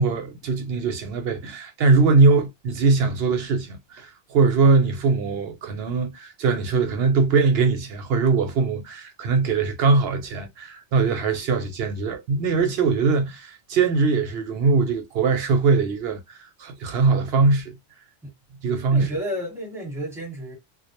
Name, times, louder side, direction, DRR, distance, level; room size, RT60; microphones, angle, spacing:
voice 1, 0.0-16.2 16.6-17.8 18.6-19.1, right 4 dB, 65° right, 0.7 m, -21 dB
voice 2, 18.9-20.6, equal, ahead, 1.0 m, -31 dB
2.1 x 2.0 x 2.8 m
omnidirectional pair, 1.2 m